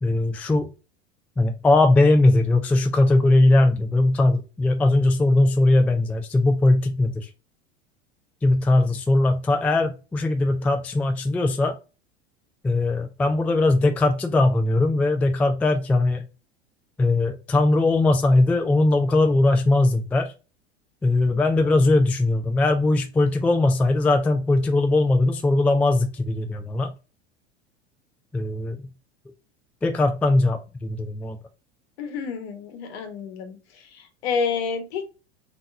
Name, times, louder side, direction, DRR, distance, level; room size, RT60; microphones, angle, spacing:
voice 1, 0.0-0.7 1.4-7.3 8.4-11.8 12.6-16.2 17.0-20.3 21.0-26.9 28.3-28.8 29.8-31.4, left 2 dB, 5° left, 6 dB, 0.3 m, -20 dB
voice 2, 32.0-35.0, left 5 dB, 60° left, 6 dB, 1.1 m, -29 dB
3.7 x 2.9 x 2.5 m, 0.30 s
hypercardioid pair, 90°, 34 cm